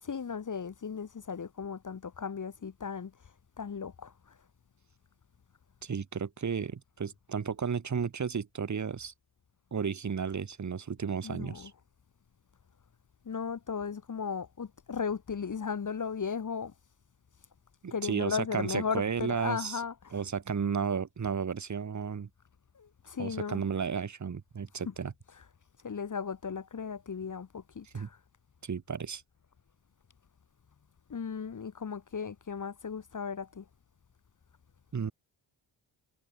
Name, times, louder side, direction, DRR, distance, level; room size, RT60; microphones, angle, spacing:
voice 1, 0.0-3.1 3.6-4.4 11.2-11.7 13.2-16.7 17.9-20.2 22.7-23.6 24.9-25.0 25.8-28.2 31.1-33.6, left 6 dB, 35° left, 1.3 m, -36 dB
voice 2, 5.8-9.1 9.7-11.7 17.8-19.8 20.1-22.3 23.2-25.1 27.9-28.1 28.6-29.2 34.9-35.1, right 6 dB, 35° right, 1.3 m, -33 dB
cardioid pair, 60°, 50 cm